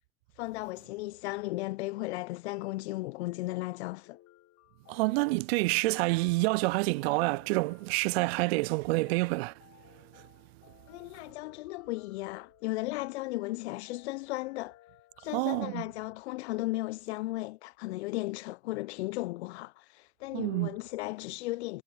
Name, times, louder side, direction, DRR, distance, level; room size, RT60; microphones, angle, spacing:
voice 1, 0.4-4.2 10.9-14.8 15.2-21.8, left 20 dB, 65° left, 0.9 m, -36 dB
sound 1, 2.5-15.8, left 14 dB, 45° left, 4.6 m, -60 dB
voice 2, 4.9-9.5 10.1-10.2 15.3-15.8 20.3-20.8, right 24 dB, 55° right, 0.5 m, -28 dB
figure-of-eight pair, 70°, 37 cm